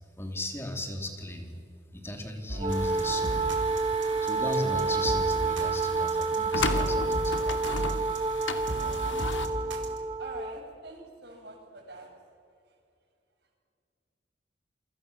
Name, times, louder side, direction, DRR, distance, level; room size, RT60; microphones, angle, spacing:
voice 1, 0.2-1.6 1.9-3.4 4.2-7.6, left 1 dB, 15° left, 4 dB, 3.2 m, -36 dB
sound 1, 2.5-10.0, right 1 dB, 80° right, 3.8 m, -37 dB
Wind instrument woodwind instrument, 2.6-10.6, right 4 dB, 30° right, 1.1 m, -29 dB
sound 2, 2.7-9.5, left 3 dB, 80° left, 2.2 m, -36 dB
voice 2, 10.2-12.1, right 2 dB, 60° right, 1 dB, 7.2 m, -44 dB
28.5 x 25.0 x 7.1 m, 2.4 s
head